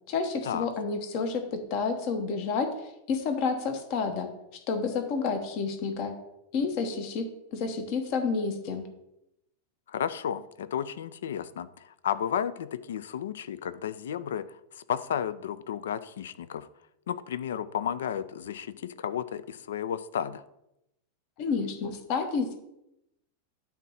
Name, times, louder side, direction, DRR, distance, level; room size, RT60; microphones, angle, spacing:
voice 1, 0.1-4.3 4.7-6.1 6.5-7.2 7.5-8.8 21.4-22.5, left 5 dB, 45° left, 7 dB, 1.0 m, -30 dB
voice 2, 9.9-16.7 17.1-20.4, left 9 dB, 60° left, 15 dB, 0.4 m, -33 dB
9.0 x 3.1 x 5.6 m, 0.86 s
figure-of-eight pair, 90°, 0 cm